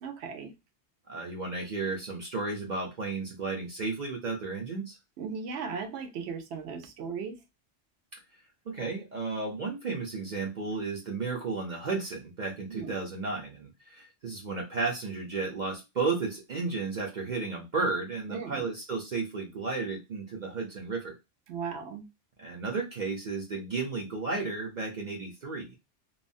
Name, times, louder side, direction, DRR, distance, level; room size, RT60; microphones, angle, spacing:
voice 1, 0.0-0.5 5.2-7.4 12.7-12.9 18.3-18.7 21.5-22.0, right 6 dB, 70° right, 0.9 m, -37 dB
voice 2, 1.1-5.0 8.1-8.2 8.7-21.2 22.4-25.8, right 4 dB, 50° right, 0.6 m, -33 dB
3.2 x 2.0 x 2.5 m
omnidirectional pair, 1.2 m